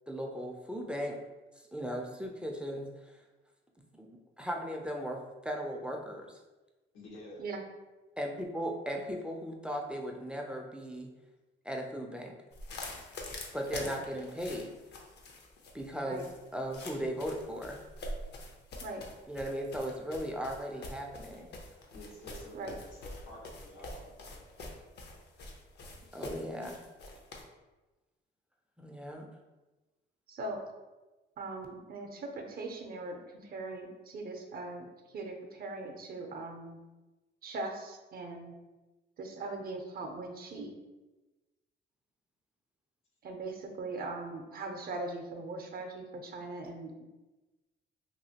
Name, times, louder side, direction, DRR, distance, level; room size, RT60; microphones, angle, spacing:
voice 1, 0.1-1.2 1.6-3.2 4.0-4.1 4.4-6.4 8.2-11.1 11.6-12.4 13.5-14.7 15.7-17.8 19.3-21.5 26.1-26.8 28.8-29.3, equal, 5° right, 1 dB, 0.4 m, -37 dB
voice 2, 6.9-7.4 21.9-24.5, left 1 dB, 85° left, -5 dB, 1.1 m, -50 dB
sound 1, 12.5-27.4, left 1 dB, 60° left, 0.6 m, -45 dB
voice 3, 30.3-30.6 31.4-34.9 35.1-36.8 37.4-38.5 39.2-40.8 43.2-47.1, right 2 dB, 50° right, 3 dB, 0.6 m, -40 dB
2.9 x 2.6 x 2.8 m, 1.1 s
cardioid pair, 90°, 20 cm